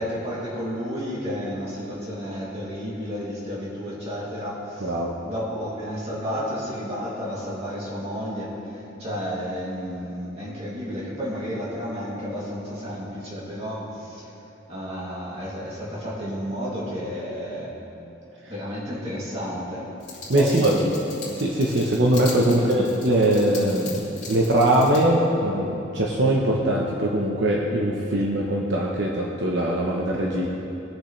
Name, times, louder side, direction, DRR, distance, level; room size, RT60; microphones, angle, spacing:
voice 1, 0.0-5.0 5.2-14.3 14.7-17.7 18.5-19.9 20.3-20.9 22.4-23.0, equal, 35° right, -7 dB, 2.8 m, -31 dB
voice 2, 4.8-5.1 20.3-20.8 21.4-23.9 24.3-30.5, right 1 dB, 70° right, -2 dB, 0.9 m, -21 dB
sound 1, 20.0-25.0, left 4 dB, 35° left, 2.6 m, -39 dB
20.5 x 6.9 x 3.3 m, 2.9 s
head